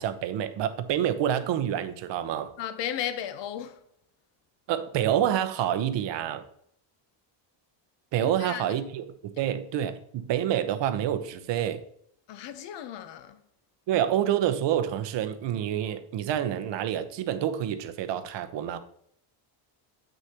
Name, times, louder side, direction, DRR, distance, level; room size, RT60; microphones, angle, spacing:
voice 1, 0.0-2.5 4.7-6.4 8.1-11.8 13.9-18.8, right 10 dB, 60° right, 0.9 m, -28 dB
voice 2, 2.6-3.8 8.2-8.7 9.4-9.5 12.3-13.4, left 10 dB, 60° left, 0.9 m, -35 dB
8.1 x 6.4 x 2.9 m
cardioid pair, 115°, 48 cm